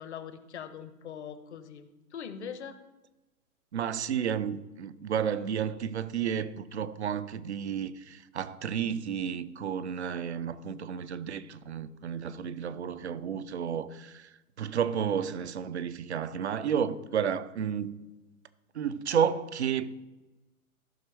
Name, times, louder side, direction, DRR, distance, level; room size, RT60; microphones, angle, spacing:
voice 1, 0.0-2.8, left 7 dB, 50° left, 1.0 m, -42 dB
voice 2, 3.7-17.9 18.7-20.0, right 8 dB, 45° right, 0.7 m, -32 dB
15.0 x 6.0 x 3.3 m
figure-of-eight pair, 120°, 45 cm